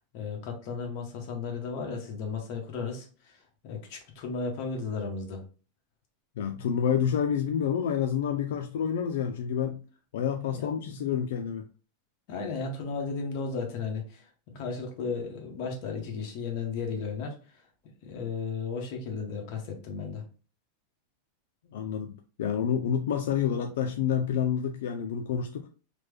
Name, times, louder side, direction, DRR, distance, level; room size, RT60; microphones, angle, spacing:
voice 1, 0.1-3.4 3.6-5.4 10.5-11.0 12.3-14.2 14.5-17.3 18.0-20.2, left 5 dB, 45° left, 1 dB, 1.0 m, -34 dB
voice 2, 6.4-9.8 10.1-11.7 21.7-25.7, left 8 dB, 75° left, 6 dB, 0.3 m, -28 dB
3.3 x 2.1 x 3.3 m, 0.37 s
supercardioid pair, 165°, 0 cm